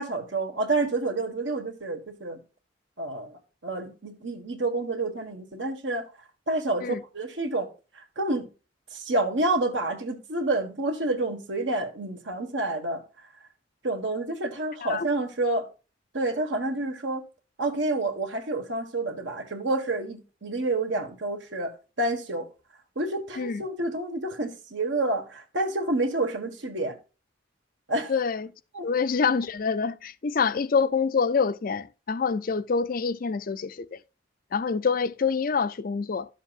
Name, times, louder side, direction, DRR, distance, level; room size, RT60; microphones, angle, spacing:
voice 1, 0.0-2.4 3.0-6.1 6.5-8.5 8.9-13.3 13.8-15.7 16.1-17.2 17.6-22.5 22.9-27.0 27.9-28.1 28.7-28.9, right 2 dB, 70° right, 1.6 m, -29 dB
voice 2, 28.1-28.5 28.8-34.0 34.5-36.3, left 5 dB, 45° left, 0.5 m, -26 dB
12.0 x 7.2 x 2.5 m
head